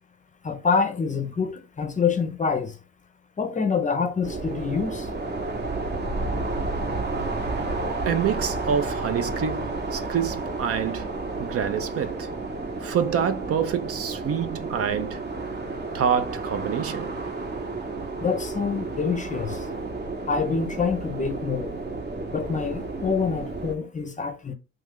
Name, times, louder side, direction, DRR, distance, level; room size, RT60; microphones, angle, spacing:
voice 1, 0.4-2.7 3.4-5.1 18.2-19.6 20.3-21.7 22.3-24.5, left 5 dB, 25° left, 0.6 m, -26 dB
sound 1, 4.2-23.7, right 3 dB, 35° right, 0.9 m, -31 dB
voice 2, 8.1-11.1 11.4-12.3 12.8-15.2 15.9-17.1, right 8 dB, 50° right, 0.5 m, -27 dB
3.2 x 2.4 x 3.5 m
cardioid pair, 90°, 30 cm